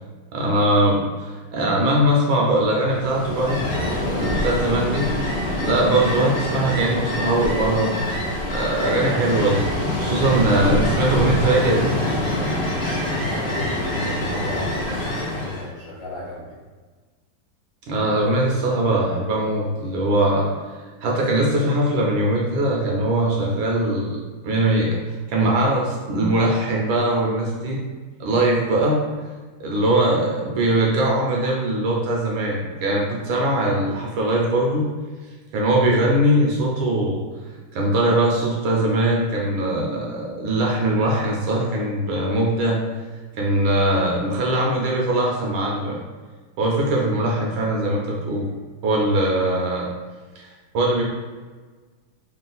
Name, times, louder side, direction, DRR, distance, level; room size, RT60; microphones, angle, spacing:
voice 1, 0.3-5.1 5.6-7.9 8.5-12.0 17.9-20.5 21.0-25.0 25.3-27.8 28.2-29.0 29.6-34.9 35.5-37.2 37.7-42.8 43.4-46.0 46.6-48.5 48.8-49.9 50.4-50.5 50.7-51.0, right 1 dB, 70° right, -2 dB, 1.3 m, -21 dB
Ocean, 2.9-15.7, left 1 dB, 80° left, 0.4 m, -25 dB
voice 2, 13.0-16.6, left 1 dB, 55° left, -7 dB, 1.4 m, -33 dB
3.7 x 2.4 x 3.9 m, 1.4 s
omnidirectional pair, 2.4 m